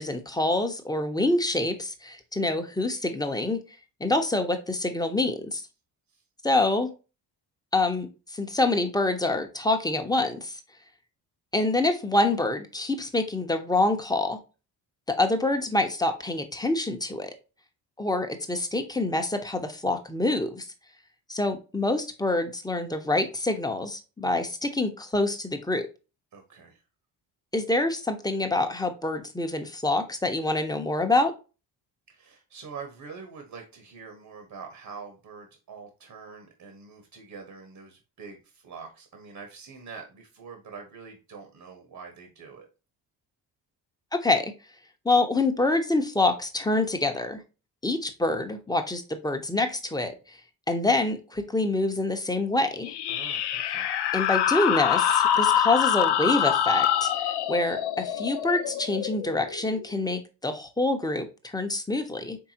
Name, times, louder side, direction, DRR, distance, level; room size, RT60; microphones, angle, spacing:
voice 1, 0.0-3.6 4.0-5.6 6.4-6.9 7.7-10.6 11.5-14.4 15.1-17.3 18.0-20.7 21.3-25.9 27.5-31.3 44.1-44.5 45.0-47.4 47.8-50.4 50.7-52.9 54.1-62.4, left 2 dB, 10° left, 6 dB, 0.8 m, -26 dB
voice 2, 26.3-26.8 32.1-42.7 53.1-53.9, right 5 dB, 55° right, 4 dB, 1.2 m, -45 dB
sound 1, 52.8-60.1, left 10 dB, 65° left, 0.6 m, -25 dB
4.7 x 3.4 x 2.7 m, 0.31 s
supercardioid pair, 70°, 43 cm